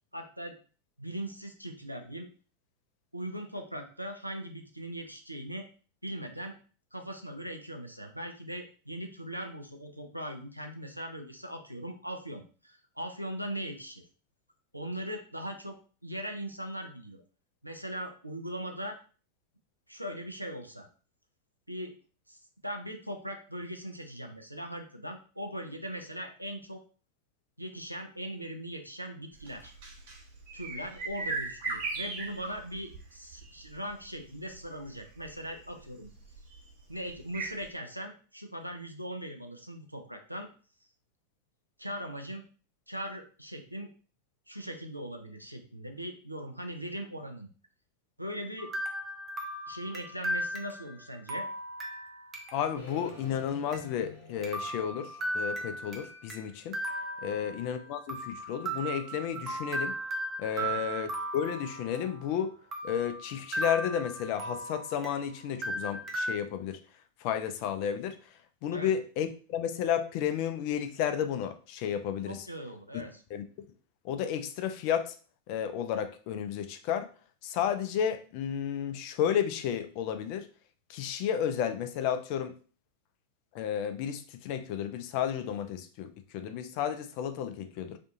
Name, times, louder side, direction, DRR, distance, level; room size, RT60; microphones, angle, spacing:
voice 1, 0.1-0.6 1.0-2.3 3.1-5.7 6.0-6.6 6.9-14.0 14.7-15.8 16.0-17.2 17.6-19.0 19.9-20.9 21.7-22.0 22.3-22.4 22.6-26.8 27.6-29.7 30.5-36.1 36.9-40.5 41.8-42.4 42.9-43.9 44.5-47.5 48.2-48.7 49.7-51.5 57.2-57.5 60.5-60.8 68.7-68.9 72.3-73.2, equal, 90° right, 4 dB, 0.4 m, -40 dB
sound 1, 29.4-37.7, right 3 dB, 50° right, 0.8 m, -39 dB
sound 2, 48.6-52.8 53.1-53.2 53.7-53.8 54.4-56.4 56.7-57.8 58.1-62.3 62.7-65.3 65.6-66.3, right 1 dB, 25° right, 0.5 m, -36 dB
voice 2, 52.5-56.8 57.2-60.0 60.4-62.5 62.8-66.8 67.2-68.2 68.6-72.4 72.9-73.0 73.3-73.7 74.0-75.1 75.5-77.1 77.4-80.5 80.9-82.5 83.5-88.0, left 9 dB, 45° left, 8 dB, 0.4 m, -32 dB
sound 3, 52.8-56.8, left 2 dB, 75° left, 0.8 m, -50 dB
2.5 x 2.3 x 2.6 m, 0.39 s
figure-of-eight pair, 90°, 0 cm